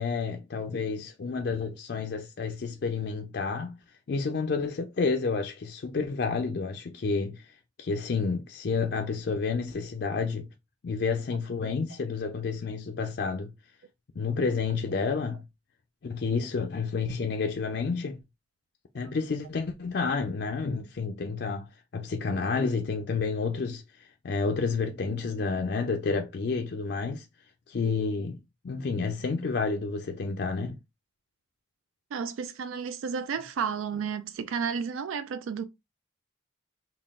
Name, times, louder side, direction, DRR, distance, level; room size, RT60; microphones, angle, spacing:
voice 1, 0.0-3.8 4.1-10.5 10.8-13.5 14.2-15.4 16.0-18.2 18.9-27.3 27.7-30.8, left 4 dB, 55° left, 0.4 m, -30 dB
voice 2, 32.1-35.6, right 6 dB, 90° right, 0.3 m, -32 dB
3.8 x 2.3 x 3.5 m
head